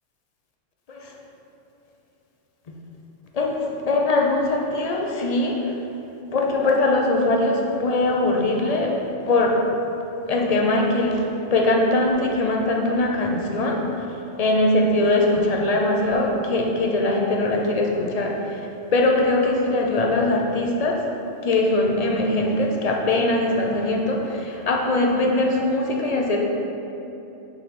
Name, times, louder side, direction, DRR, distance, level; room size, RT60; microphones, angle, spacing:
voice 1, 3.3-5.8 6.3-9.0 9.3-9.6 10.3-14.0 14.4-18.6 18.9-21.1 21.4-26.4, left 2 dB, 50° left, 0 dB, 0.5 m, -21 dB
6.4 x 4.0 x 4.0 m, 2.9 s
omnidirectional pair, 1.3 m